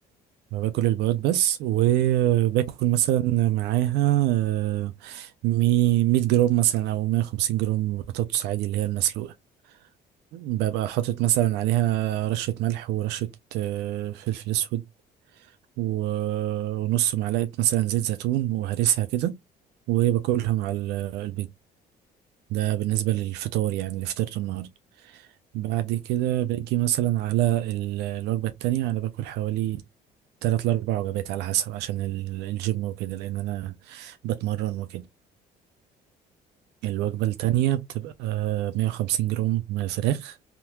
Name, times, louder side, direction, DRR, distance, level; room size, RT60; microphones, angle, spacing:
voice 1, 0.5-9.3 10.3-14.8 15.4-15.5 15.8-19.4 19.9-21.5 22.5-24.7 25.0-25.3 25.5-29.8 30.4-35.0 36.8-40.4, right 14 dB, 85° right, 0.5 m, -25 dB
3.5 x 2.9 x 2.3 m
cardioid pair, 110°, 17 cm